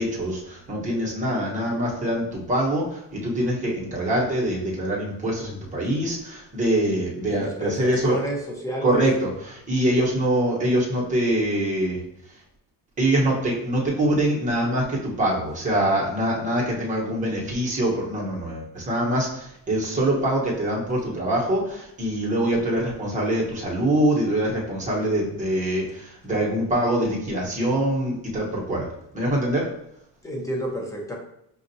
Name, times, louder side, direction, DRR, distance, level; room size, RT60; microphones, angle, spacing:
voice 1, 0.0-8.2 8.8-12.0 13.0-28.9 29.1-29.7, right 1 dB, 20° right, -4 dB, 1.1 m, -24 dB
voice 2, 7.3-9.0 30.2-31.2, equal, 10° left, -1 dB, 0.6 m, -30 dB
5.2 x 2.5 x 2.7 m, 0.77 s
cardioid pair, 135°, 36 cm